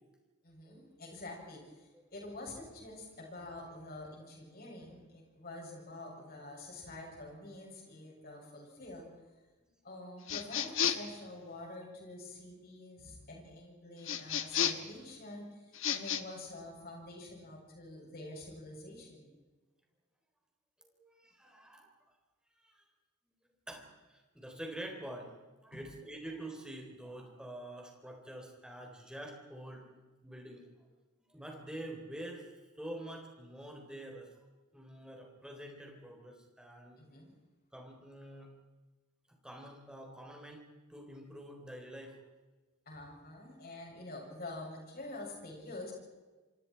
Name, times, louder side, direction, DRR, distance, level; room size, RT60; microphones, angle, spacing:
voice 1, 0.4-9.1 9.8-19.3 25.7-25.8 37.0-37.3 42.9-45.9, left 2 dB, 45° left, -1 dB, 7.2 m, -47 dB
sound 1, 10.3-11.2 14.0-14.9 15.7-16.2, left 8 dB, 60° left, 1.3 m, -32 dB
voice 2, 20.8-21.9 22.6-22.8 23.7-25.4 25.6-29.9 30.2-30.6 31.2-34.3 34.7-37.0 37.7-38.5 39.3-42.2, right 1 dB, 5° right, 2 dB, 3.8 m, -47 dB
27.5 x 25.5 x 4.6 m, 1.2 s
head